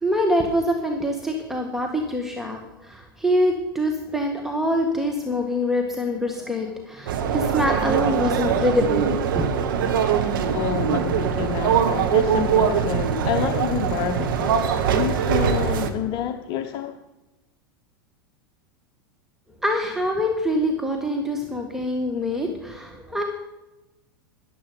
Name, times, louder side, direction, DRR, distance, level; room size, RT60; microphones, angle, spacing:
voice 1, 0.0-9.9 19.6-23.2, left 1 dB, 5° right, 2 dB, 1.7 m, -25 dB
sound 1, 7.1-15.9, right 7 dB, 65° right, 1.5 m, -22 dB
voice 2, 10.5-14.6 14.9-17.0, left 9 dB, 45° left, 7 dB, 0.9 m, -28 dB
13.5 x 11.0 x 5.3 m, 0.99 s
figure-of-eight pair, 90°, 12 cm